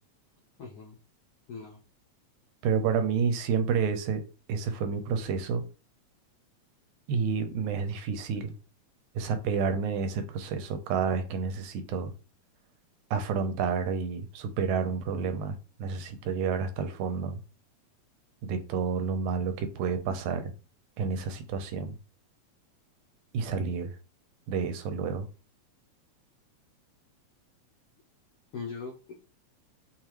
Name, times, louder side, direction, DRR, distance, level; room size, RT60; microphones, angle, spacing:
voice 1, 0.6-1.0 1.5-1.8 28.5-29.1, left 5 dB, 80° left, 1.3 m, -40 dB
voice 2, 2.6-4.2 4.5-5.7 7.1-8.5 9.2-12.1 13.1-17.4 18.4-20.5 21.0-22.0 23.3-23.9 24.5-25.3, right 6 dB, 90° right, 2.0 m, -29 dB
5.2 x 2.4 x 3.0 m
omnidirectional pair, 3.4 m